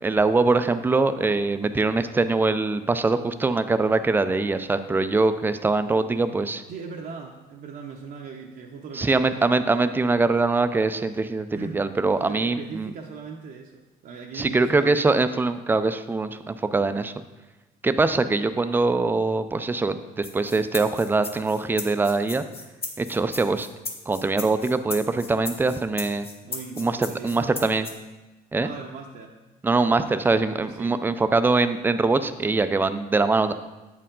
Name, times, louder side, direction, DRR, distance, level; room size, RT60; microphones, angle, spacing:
voice 1, 0.0-6.6 8.9-11.5 11.7-12.9 14.3-17.1 17.8-22.5 23.0-23.7 24.1-26.3 26.8-27.9 28.5-28.7 29.6-33.5, right 3 dB, 10° right, 11 dB, 0.3 m, -23 dB
voice 2, 6.7-9.7 11.5-11.8 12.2-15.1 26.4-27.8 28.6-29.3 29.8-31.0, right 5 dB, 55° right, 0 dB, 0.6 m, -39 dB
sound 1, 20.2-27.9, left 4 dB, 35° left, 1.0 m, -36 dB
8.2 x 4.6 x 3.7 m, 1.1 s
cardioid pair, 110°, 17 cm